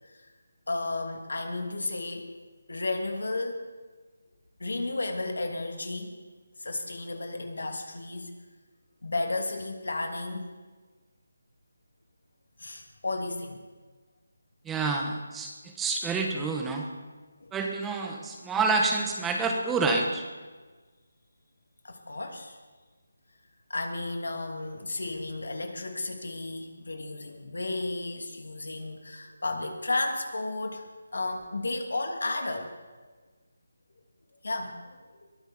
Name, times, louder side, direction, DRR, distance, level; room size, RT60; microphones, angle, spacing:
voice 1, 0.7-2.3 2.7-3.7 4.6-6.1 6.6-8.3 9.0-10.5 12.6-13.6 17.4-17.6 21.8-22.6 23.7-30.8 31.1-32.7 34.4-35.0, left 2 dB, 80° left, 4 dB, 2.7 m, -33 dB
voice 2, 14.6-16.9 17.5-20.2, right 3 dB, 10° right, 2 dB, 1.4 m, -28 dB
22.0 x 13.5 x 4.4 m, 1.4 s
figure-of-eight pair, 160°, 0 cm